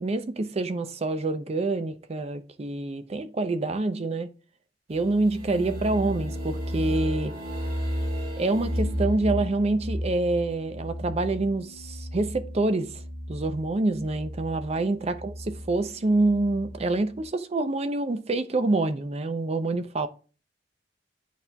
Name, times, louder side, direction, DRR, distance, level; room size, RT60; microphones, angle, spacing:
voice 1, 0.0-4.3 4.9-7.3 8.4-13.0 13.3-20.1, right 2 dB, 35° right, 0.5 m, -26 dB
sound 1, 4.9-17.3, equal, 55° right, 2.1 m, -34 dB
10.5 x 4.2 x 2.2 m
head